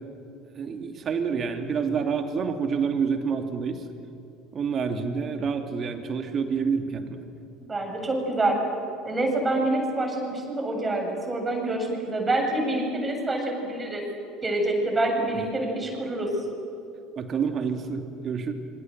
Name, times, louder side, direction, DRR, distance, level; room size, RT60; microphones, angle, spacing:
voice 1, 0.6-3.8 4.5-7.2 17.2-18.5, right 6 dB, 40° right, 6 dB, 2.8 m, -28 dB
voice 2, 7.7-8.7 9.0-14.0 14.4-16.3, right 2 dB, 20° right, 2 dB, 7.7 m, -26 dB
26.5 x 24.5 x 8.0 m, 2.6 s
figure-of-eight pair, 65°, 0 cm